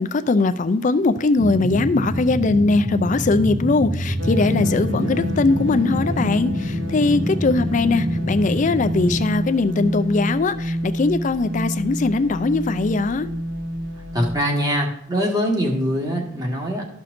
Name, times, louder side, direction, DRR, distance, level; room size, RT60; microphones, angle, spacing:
voice 1, 0.0-13.3, left 3 dB, 40° left, 11 dB, 0.4 m, -20 dB
sound 1, 1.4-9.3, left 1 dB, 45° right, 2.8 m, -26 dB
sound 2, 4.2-14.4, equal, 75° right, 0.8 m, -28 dB
voice 2, 14.1-16.9, equal, 20° right, 0 dB, 1.5 m, -23 dB
13.0 x 5.8 x 2.6 m, 0.69 s
head